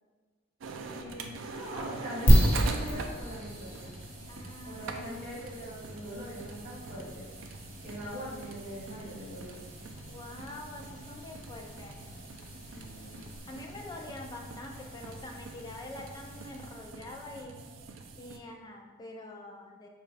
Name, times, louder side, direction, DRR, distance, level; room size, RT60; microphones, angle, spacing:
sound 1, 0.6-18.4, right 4 dB, 65° right, 0.3 m, -44 dB
voice 1, 0.9-4.0 4.6-7.3 7.8-9.6 12.4-13.3, equal, 40° right, -7 dB, 1.3 m, -42 dB
sound 2, 2.3-17.0, equal, 75° left, 1.0 m, -33 dB
voice 2, 4.3-5.2 10.1-12.0 13.5-17.6 18.2-19.9, left 2 dB, 20° left, 0 dB, 0.4 m, -45 dB
4.1 x 2.3 x 3.3 m, 1.5 s
head